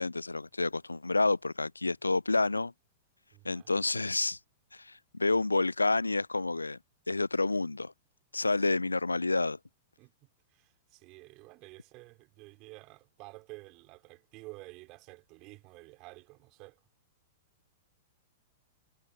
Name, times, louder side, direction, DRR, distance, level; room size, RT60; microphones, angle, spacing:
voice 1, 0.0-2.7 3.4-4.4 4.7-6.8 7.1-7.9 8.3-9.6, left 3 dB, 80° left, 0.3 m, -29 dB
voice 2, 3.3-3.8 10.0-10.1 10.5-16.8, right 23 dB, 40° right, 5.0 m, -51 dB
figure-of-eight pair, 100°, 0 cm